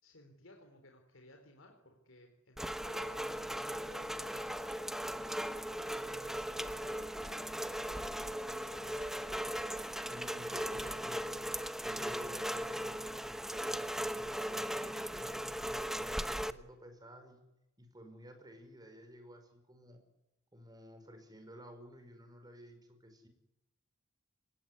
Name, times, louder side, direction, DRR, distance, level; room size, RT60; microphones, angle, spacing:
voice 1, 0.0-4.8 5.8-9.5, left 1 dB, 70° left, 3 dB, 3.9 m, -58 dB
Rain, 2.6-16.5, equal, ahead, 1.0 m, -38 dB
voice 2, 10.0-11.3 11.7-17.4 17.8-20.0 20.5-23.3, equal, 20° right, 6 dB, 5.3 m, -54 dB
25.0 x 20.0 x 9.8 m, 0.93 s
head